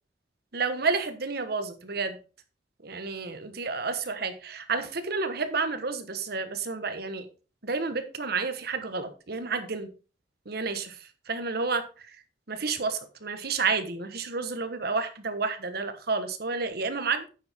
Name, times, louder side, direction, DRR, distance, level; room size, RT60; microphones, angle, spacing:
voice 1, 0.5-2.2 2.8-7.3 7.6-9.9 10.4-12.2 12.5-17.3, right 4 dB, 60° right, 9 dB, 1.2 m, -30 dB
9.8 x 7.4 x 3.6 m, 0.35 s
head